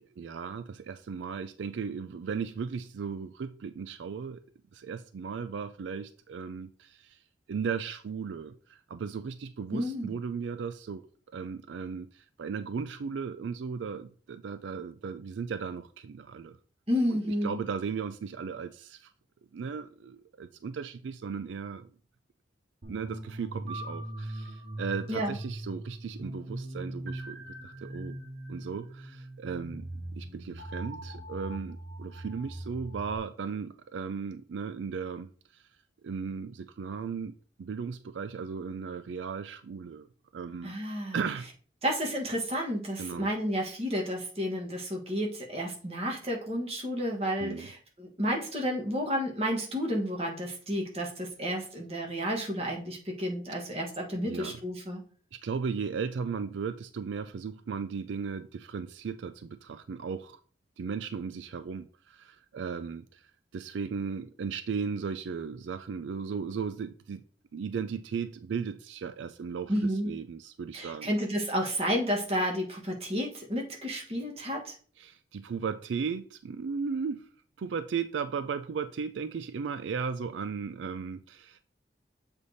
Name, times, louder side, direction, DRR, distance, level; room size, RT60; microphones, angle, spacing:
voice 1, 0.0-4.4 4.7-7.2 7.5-11.0 11.3-16.6 17.1-19.1 19.5-21.9 22.9-28.2 28.5-35.6 36.0-37.3 37.6-40.1 40.3-40.7 41.1-41.5 43.0-43.3 47.4-47.7 54.3-54.6 55.3-60.4 60.8-63.2 63.5-67.2 67.5-71.1 75.0-77.3 77.6-81.7, right 5 dB, 85° right, 0.4 m, -36 dB
voice 2, 9.7-10.1 16.9-17.6 25.1-25.3 40.6-41.2 41.8-55.0 69.7-70.1 70.7-74.7, equal, 35° right, 1.4 m, -31 dB
sound 1, 22.8-33.2, right 1 dB, 60° right, 1.1 m, -40 dB
7.1 x 3.4 x 4.0 m
head